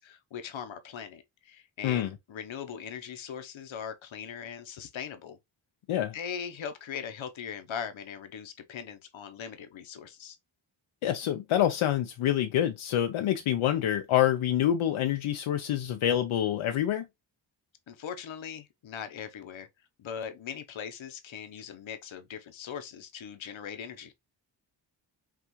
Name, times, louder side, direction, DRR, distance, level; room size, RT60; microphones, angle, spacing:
voice 1, 0.0-5.4 6.1-10.4 17.9-19.7 20.0-24.1, left 7 dB, 75° left, 0.9 m, -40 dB
voice 2, 11.0-17.0, left 11 dB, 90° left, 0.6 m, -26 dB
5.8 x 2.4 x 3.0 m
cardioid pair, 80°, 47 cm